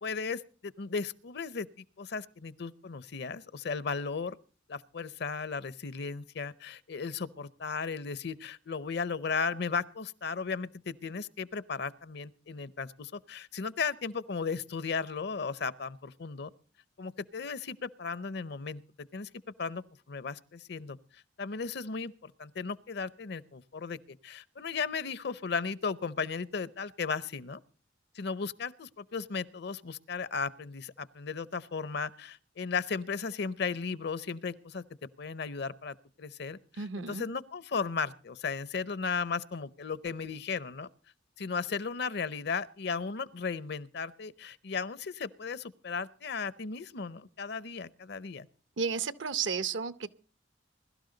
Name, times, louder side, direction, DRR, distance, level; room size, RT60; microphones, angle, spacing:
voice 1, 0.0-4.4 4.7-16.5 17.0-18.8 19.1-19.3 19.6-21.0 21.4-27.6 28.1-34.8 35.2-40.9 41.4-48.5, left 5 dB, 60° left, 0.6 m, -35 dB
voice 2, 36.8-37.2 48.8-50.1, right 5 dB, 70° right, 0.8 m, -32 dB
22.0 x 12.5 x 3.9 m
head